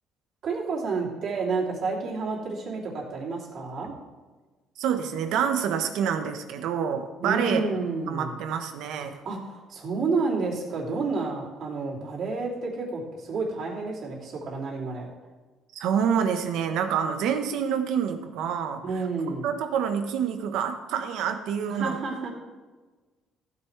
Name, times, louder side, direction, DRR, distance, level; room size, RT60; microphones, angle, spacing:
voice 1, 0.4-3.9 7.2-8.3 9.2-15.1 18.8-19.4 21.7-22.3, right 4 dB, 55° right, -4 dB, 3.2 m, -30 dB
voice 2, 4.8-7.6 8.1-9.2 15.8-18.8 19.4-22.0, right 7 dB, 80° right, 7 dB, 1.2 m, -27 dB
15.0 x 9.5 x 3.4 m, 1.3 s
cardioid pair, 135°, 0 cm